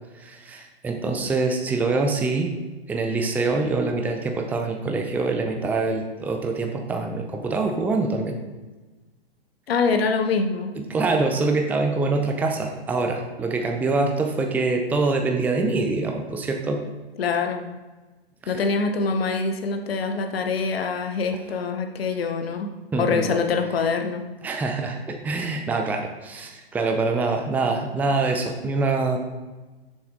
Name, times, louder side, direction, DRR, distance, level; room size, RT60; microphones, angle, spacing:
voice 1, 0.2-2.5 2.9-8.4 10.7-16.8 18.4-18.6 22.9-23.3 24.4-29.2, right 3 dB, 5° right, 3 dB, 0.5 m, -25 dB
voice 2, 9.7-10.7 17.2-17.6 18.5-22.7 23.0-24.2, left 4 dB, 70° left, 5 dB, 1.0 m, -24 dB
6.9 x 5.9 x 3.8 m, 1.2 s
hypercardioid pair, 115°, 31 cm